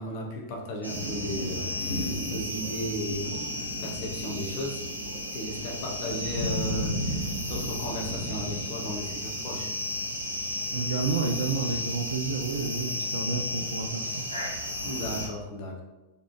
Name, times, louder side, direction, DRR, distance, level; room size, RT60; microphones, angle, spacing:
voice 1, 0.0-3.5 3.8-4.8 5.3-9.7 14.8-15.8, left 1 dB, 45° left, -1 dB, 0.8 m, -35 dB
sound 1, 0.8-15.3, left 1 dB, 90° right, 0.7 m, -32 dB
voice 2, 10.7-14.2, right 4 dB, 65° right, 4 dB, 0.4 m, -30 dB
4.0 x 3.1 x 3.0 m, 1.0 s
figure-of-eight pair, 90°, 0 cm